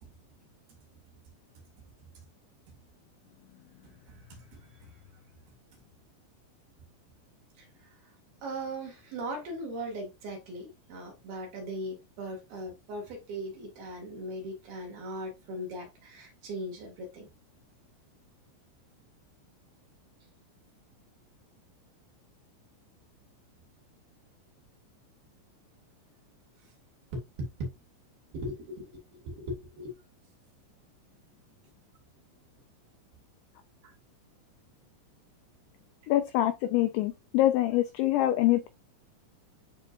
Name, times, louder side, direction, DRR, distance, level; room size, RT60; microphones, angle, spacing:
voice 1, 3.8-4.7 7.6-8.0 8.4-17.3 27.1-27.7 28.3-29.9 33.8-33.9, right 1 dB, 55° right, 3.6 m, -39 dB
voice 2, 36.1-38.7, left 14 dB, 85° left, 2.6 m, -25 dB
11.0 x 4.4 x 2.5 m
omnidirectional pair, 6.0 m